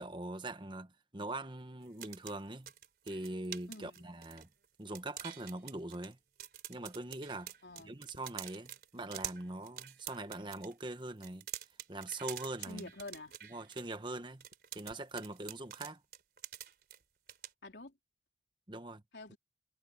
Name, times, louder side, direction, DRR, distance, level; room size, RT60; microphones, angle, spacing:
voice 1, 0.0-2.7 3.0-4.5 4.8-6.2 6.7-7.5 7.8-11.6 11.9-12.9 13.5-14.4 14.7-16.0 18.7-19.0, right 2 dB, 25° right, 1.2 m, -42 dB
sound 1, 1.8-4.6 4.9-6.1 6.4-10.7 11.2-13.9 14.4-17.0 17.3-17.5, right 11 dB, 60° right, 4.1 m, -46 dB
voice 2, 3.7-4.0 7.6-8.0 12.7-13.4 17.6-17.9 19.1-19.4, left 2 dB, 75° left, 3.5 m, -48 dB
head